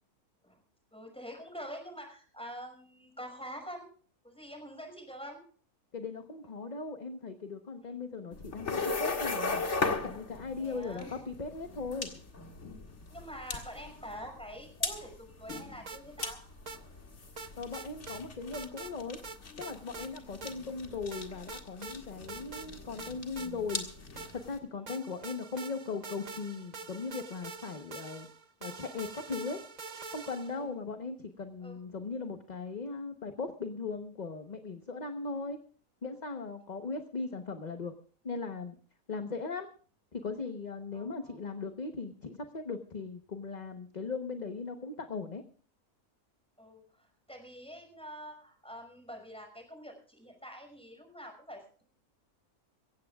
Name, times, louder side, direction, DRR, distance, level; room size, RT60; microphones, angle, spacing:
voice 1, 0.9-3.9 4.2-5.4 7.8-8.0 10.6-11.1 13.1-16.4 20.2-20.3 24.8-24.9 30.5-30.7 31.6-31.8 40.9-41.4 46.6-51.8, equal, 5° left, 3 dB, 5.7 m, -46 dB
voice 2, 5.9-9.7 10.0-12.1 17.6-19.2 19.6-23.9 24.3-28.3 28.6-29.6 30.1-35.6 36.0-37.9 38.2-38.8 39.1-39.7 40.1-45.4, left 4 dB, 30° left, 6 dB, 1.0 m, -38 dB
sound 1, 8.3-24.6, left 3 dB, 50° left, 2.2 m, -38 dB
sound 2, 15.5-16.3 16.7-16.8 17.4-18.2 18.5-18.9 19.2-20.1 20.4-20.5 21.1-22.0 22.3-22.7 23.0-24.5 24.9-30.6, right 4 dB, 40° right, 0.7 m, -45 dB
25.0 x 16.0 x 2.4 m, 0.43 s
omnidirectional pair, 1.6 m